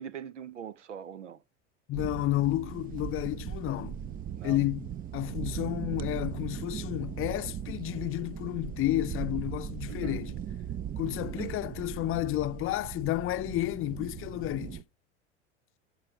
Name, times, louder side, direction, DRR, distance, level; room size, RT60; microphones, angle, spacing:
voice 1, 0.0-1.4 4.4-4.7 9.8-10.2 11.2-11.6, right 9 dB, 85° right, 0.9 m, -42 dB
voice 2, 1.9-4.0 4.4-10.3 11.0-14.8, left 16 dB, 35° left, 0.6 m, -31 dB
sound 1, 1.9-14.8, right 9 dB, 25° right, 0.5 m, -38 dB
14.5 x 5.0 x 7.7 m
hypercardioid pair, 80°, 35 cm